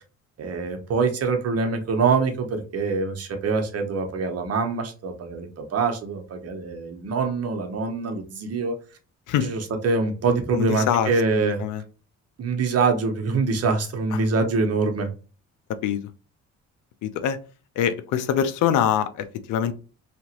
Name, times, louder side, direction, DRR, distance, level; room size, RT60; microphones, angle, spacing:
voice 1, 0.4-8.8 9.4-11.6 12.4-15.1, right 4 dB, 55° right, 0.8 m, -24 dB
voice 2, 10.5-11.8 14.1-14.2 15.8-16.0 17.0-17.4 17.8-19.7, left 9 dB, 80° left, 0.5 m, -24 dB
2.9 x 2.5 x 2.8 m
cardioid pair, 90°, 30 cm